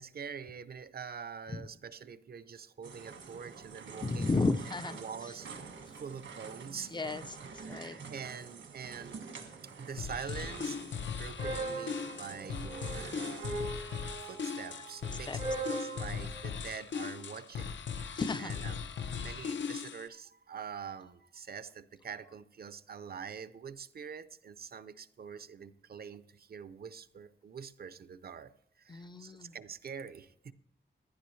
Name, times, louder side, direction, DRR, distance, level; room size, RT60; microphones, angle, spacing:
voice 1, 0.0-4.4 4.9-5.5 6.0-6.9 7.6-9.2 9.6-18.9 19.2-30.5, right 6 dB, 55° right, 0.6 m, -45 dB
sound 1, 2.8-16.4, right 3 dB, 85° right, 1.7 m, -43 dB
voice 2, 4.0-5.0 6.9-7.4 7.7-8.0 15.3-15.4 18.2-18.6 28.9-29.5, left 3 dB, 25° left, 0.5 m, -33 dB
sound 2, 10.0-20.1, left 6 dB, 75° left, 0.7 m, -39 dB
15.5 x 11.5 x 3.2 m
wide cardioid pair, 155°, 19 cm